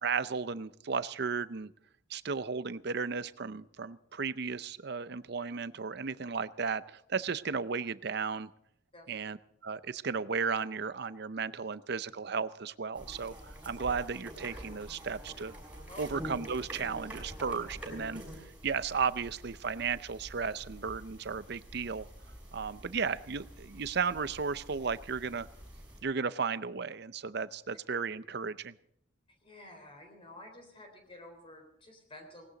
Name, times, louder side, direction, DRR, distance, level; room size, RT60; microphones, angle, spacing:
voice 1, 0.0-1.7 2.1-8.5 9.1-9.4 9.6-15.5 16.0-22.1 22.5-25.5 26.0-28.7, right 5 dB, 60° right, 15 dB, 0.6 m, -34 dB
sound 1, 12.9-26.0, equal, 10° right, 6.0 m, -47 dB
voice 2, 29.4-32.5, left 1 dB, 30° left, 4 dB, 3.8 m, -51 dB
19.0 x 18.0 x 4.0 m, 0.70 s
head